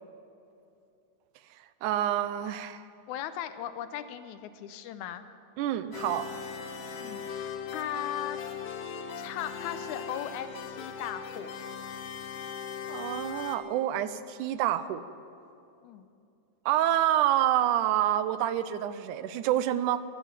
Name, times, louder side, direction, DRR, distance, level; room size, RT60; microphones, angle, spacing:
voice 1, 1.8-2.8 5.6-6.3 12.9-15.0 16.7-20.0, right 12 dB, 85° right, 13 dB, 2.1 m, -27 dB
voice 2, 3.1-5.3 7.0-8.4 9.2-11.5 15.8-16.1, left 11 dB, 80° left, 11 dB, 2.0 m, -38 dB
sound 1, 5.9-13.6, left 6 dB, 60° left, 1.8 m, -39 dB
15.0 x 13.0 x 7.4 m, 2.7 s
omnidirectional pair, 3.5 m